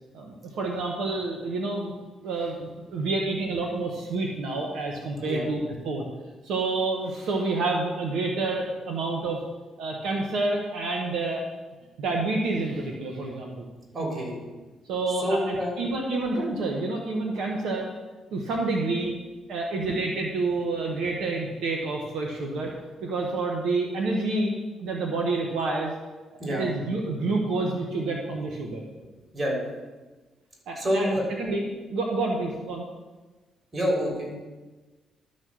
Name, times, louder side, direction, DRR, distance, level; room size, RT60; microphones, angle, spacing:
voice 1, 0.1-1.9 2.2-6.0 6.4-9.4 9.8-11.4 12.0-13.7 14.9-17.9 18.3-19.1 19.5-22.7 23.0-24.5 24.8-25.9 26.6-28.8 30.7-31.6 31.9-32.9, right 3 dB, 85° right, 0 dB, 1.2 m, -28 dB
voice 2, 13.9-14.3 15.2-15.7 26.4-26.7 29.3-29.6 30.8-31.2 33.7-34.3, equal, 35° right, -1 dB, 3.7 m, -27 dB
12.5 x 4.3 x 6.3 m, 1.2 s
cardioid pair, 90°, 0 cm